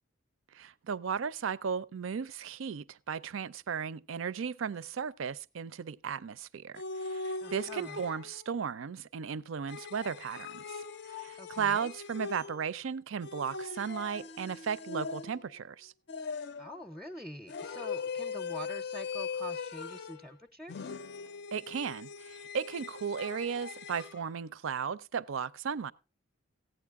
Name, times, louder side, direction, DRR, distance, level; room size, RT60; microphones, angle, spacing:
voice 1, 0.5-15.9 21.5-25.9, right 6 dB, 75° right, 0.5 m, -35 dB
sound 1, 6.8-8.5 9.7-12.8 13.2-15.6 16.1-16.8 17.5-20.3 20.7-24.2, left 5 dB, 55° left, 0.5 m, -40 dB
voice 2, 7.4-8.0 11.4-11.9 16.6-20.8, equal, ahead, 0.5 m, -45 dB
15.5 x 9.0 x 3.5 m
head